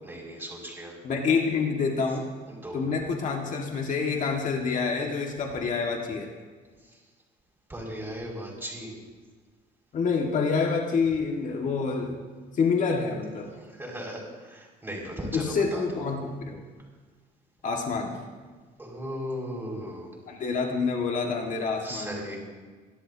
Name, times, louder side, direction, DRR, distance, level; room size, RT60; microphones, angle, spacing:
voice 1, 0.0-0.9 2.5-2.8 6.8-7.0 7.7-8.9 13.6-16.0 18.8-20.1 21.8-22.4, equal, 10° right, -2 dB, 5.7 m, -37 dB
voice 2, 1.0-2.3 2.7-6.3 9.9-12.2 12.5-13.5 15.3-16.6 17.6-18.2 20.3-22.3, left 5 dB, 50° left, 1 dB, 1.8 m, -27 dB
26.5 x 13.0 x 2.8 m, 1.4 s
cardioid pair, 110°, 17 cm